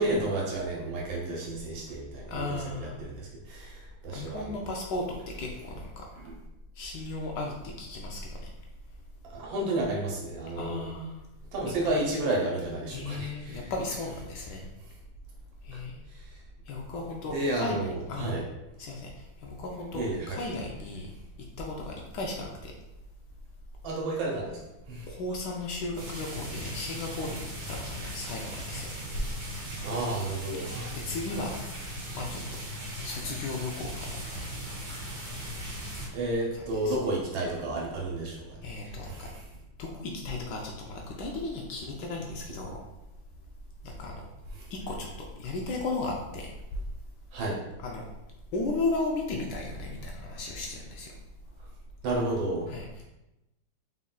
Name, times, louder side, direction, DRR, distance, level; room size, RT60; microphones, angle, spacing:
voice 1, 0.0-4.5 6.2-6.3 9.3-10.9 11.5-13.7 17.3-18.4 19.9-20.4 23.8-24.6 24.9-25.1 29.8-30.9 36.1-39.3 44.6-44.7 47.3-47.6 52.0-52.7, right 2 dB, 85° right, -3 dB, 1.6 m, -31 dB
voice 2, 2.3-3.0 4.1-6.0 6.8-8.5 10.5-11.2 11.8-12.0 12.9-14.7 15.6-15.9 16.7-18.4 18.8-21.1 21.6-22.7 25.1-29.3 30.6-31.5 32.1-32.4 33.0-34.4 36.5-37.0 38.6-39.3 39.8-42.8 43.8-44.2 44.7-45.1 45.4-46.8 47.8-48.1 48.5-51.1 52.7-53.0, left 2 dB, 75° left, 0 dB, 1.1 m, -35 dB
sound 1, 26.0-36.1, equal, 55° right, 1.7 m, -38 dB
4.1 x 3.7 x 2.3 m, 0.94 s
omnidirectional pair, 2.1 m